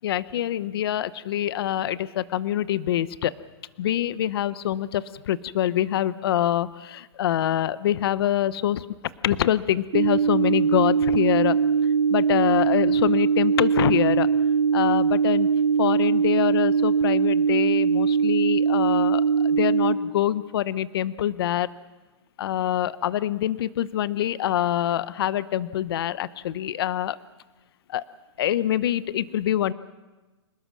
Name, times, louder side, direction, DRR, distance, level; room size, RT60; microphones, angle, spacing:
voice 1, 0.0-3.3 3.8-8.9 9.2-11.6 12.1-14.3 14.7-15.5 15.8-21.7 22.4-27.2 27.9-28.0 28.4-29.7, left 11 dB, 55° left, 16 dB, 0.8 m, -25 dB
sound 1, 9.9-19.9, right 6 dB, 55° right, 3.1 m, -21 dB
27.5 x 19.5 x 6.1 m, 1.2 s
hypercardioid pair, 160°, 15 cm